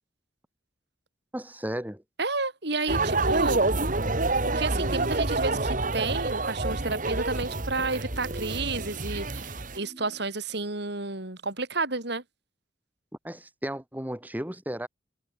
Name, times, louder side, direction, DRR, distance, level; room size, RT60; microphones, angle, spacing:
voice 1, 1.3-2.0 13.2-14.9, equal, 10° right, 2.1 m, -34 dB
voice 2, 2.2-3.6 4.4-12.2, right 3 dB, 60° right, 4.0 m, -31 dB
sound 1, 2.9-9.8, right 2 dB, 45° right, 2.3 m, -28 dB
sound 2, 4.7-10.2, equal, 30° right, 5.6 m, -53 dB
head